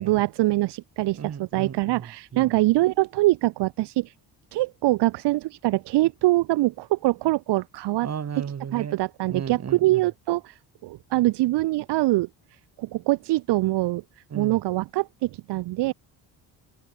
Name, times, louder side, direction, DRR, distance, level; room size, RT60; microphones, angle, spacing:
voice 1, 0.0-4.1 4.5-8.1 8.7-10.5 10.8-12.3 12.8-14.0 14.3-15.9, right 18 dB, 80° right, 0.8 m, -23 dB
voice 2, 1.1-2.5 8.0-9.0 9.3-10.0 14.3-14.6, right 7 dB, 40° right, 3.0 m, -35 dB
cardioid pair, 115°, 41 cm